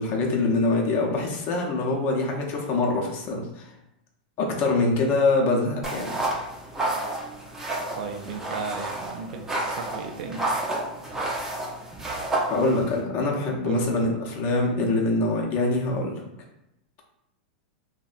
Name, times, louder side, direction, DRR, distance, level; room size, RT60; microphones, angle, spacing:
voice 1, 0.0-3.7 4.4-6.2 12.5-16.2, left 2 dB, 40° left, -1 dB, 0.6 m, -24 dB
sound 1, 5.8-13.0, right 2 dB, 10° right, 0.5 m, -30 dB
voice 2, 7.9-10.6 13.6-13.9, right 4 dB, 65° right, 4 dB, 0.3 m, -35 dB
2.6 x 2.1 x 2.4 m, 0.86 s
hypercardioid pair, 125°, 5 cm